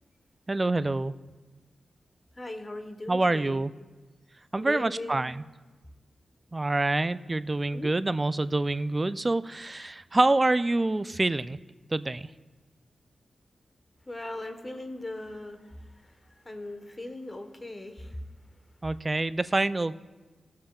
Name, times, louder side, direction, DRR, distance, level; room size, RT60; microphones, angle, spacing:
voice 1, 0.5-1.2 3.1-3.7 4.5-5.4 6.5-11.6 11.9-12.3 18.8-20.0, right 2 dB, 30° right, 14 dB, 0.3 m, -26 dB
voice 2, 2.4-3.6 4.6-5.2 7.7-7.9 14.1-15.7 16.0-16.1 16.4-18.2, left 1 dB, 25° left, 6 dB, 1.1 m, -39 dB
17.5 x 7.6 x 2.3 m, 1.2 s
cardioid pair, 70°, 0 cm